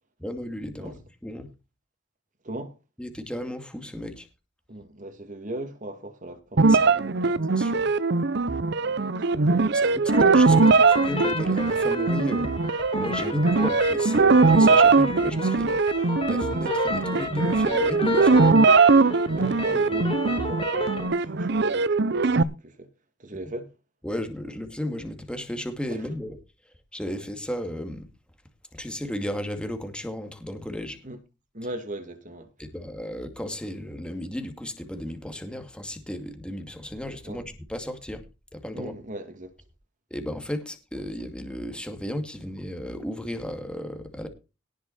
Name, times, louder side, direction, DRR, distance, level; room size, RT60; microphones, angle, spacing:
voice 1, 0.2-1.5 3.0-4.3 6.6-6.9 7.6-7.9 10.2-12.5 12.9-18.7 19.4-20.0 24.0-26.4 26.9-28.1 28.7-31.0 32.6-37.4 37.7-38.2 38.5-38.9 40.1-44.3, equal, 5° left, 2.3 m, -34 dB
voice 2, 2.4-2.8 4.7-7.4 8.8-9.0 9.3-10.4 13.2-13.4 19.2-22.9 23.2-23.7 25.9-26.1 31.0-31.2 31.5-32.5 37.2-37.5 38.7-39.5, right 1 dB, 40° right, 2.6 m, -39 dB
sound 1, 6.6-22.4, right 4 dB, 60° right, 0.8 m, -21 dB
sound 2, 10.1-21.1, left 2 dB, 30° left, 4.2 m, -32 dB
18.5 x 6.4 x 4.4 m
head